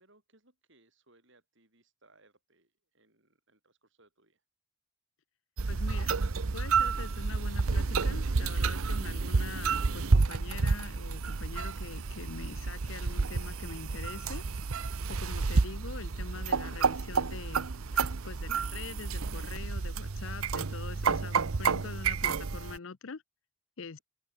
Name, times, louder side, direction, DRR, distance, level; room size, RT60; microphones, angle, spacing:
voice 1, 0.0-4.4, right 2 dB, 55° right, 6.6 m, -66 dB
sound 1, 5.6-22.8, right 4 dB, 75° right, 0.8 m, -30 dB
voice 2, 5.7-6.1 6.5-14.4 15.1-17.7 18.2-23.2 23.8-24.0, left 5 dB, 60° left, 0.7 m, -44 dB
sound 2, 12.5-17.6, left 1 dB, 15° left, 6.9 m, -69 dB
open air
head